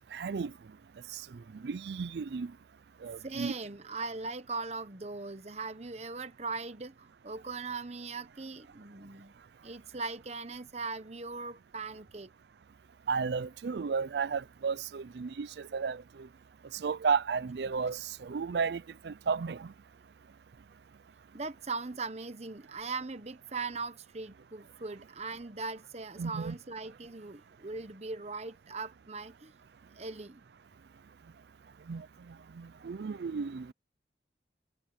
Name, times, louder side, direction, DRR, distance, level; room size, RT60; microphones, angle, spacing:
voice 1, 0.1-0.5 1.1-1.2 1.5-2.5 3.0-3.5 13.1-16.3 16.7-19.7 26.2-26.5 31.9-32.1 32.6-33.7, right 5 dB, 70° right, 0.4 m, -33 dB
voice 2, 3.2-9.3 9.6-12.3 17.8-17.9 21.3-29.5 29.9-30.4 32.8-33.2, right 4 dB, 35° right, 1.0 m, -40 dB
head